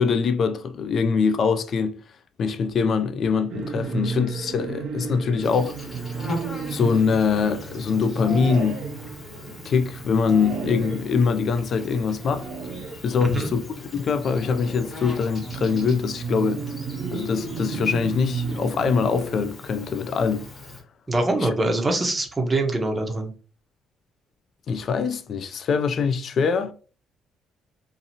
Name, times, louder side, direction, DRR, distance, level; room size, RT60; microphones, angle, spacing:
voice 1, 0.0-2.0 2.4-6.1 6.7-8.8 9.6-12.5 13.0-16.6 17.1-20.5 21.4-21.5 24.7-26.7, left 5 dB, 45° left, 0.3 m, -23 dB
sound 1, 3.5-19.5, right 5 dB, 65° right, 0.5 m, -34 dB
Insect, 5.4-20.8, left 2 dB, 30° left, 1.1 m, -41 dB
voice 2, 13.2-13.5 21.1-23.3, right 2 dB, 15° right, 0.7 m, -24 dB
2.8 x 2.5 x 2.7 m
cardioid pair, 125°, 0 cm